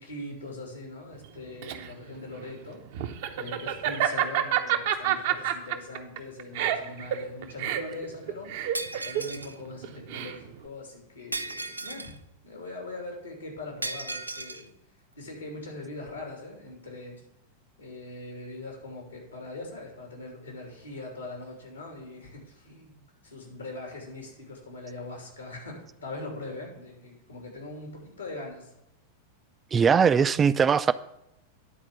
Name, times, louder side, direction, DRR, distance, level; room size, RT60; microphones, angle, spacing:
voice 1, 0.0-2.8 3.4-12.1 12.4-14.7 15.1-17.2 17.8-28.7, left 2 dB, 80° left, 0 dB, 2.9 m, -41 dB
Laughter, 1.2-10.7, right 11 dB, 50° right, 0.7 m, -29 dB
Shatter, 8.7-9.6 11.3-12.2 13.8-14.6, right 2 dB, 85° right, 0.5 m, -35 dB
voice 2, 29.7-30.9, right 6 dB, 20° right, 15 dB, 0.4 m, -20 dB
10.0 x 4.4 x 7.1 m, 0.85 s
figure-of-eight pair, 90°, 0 cm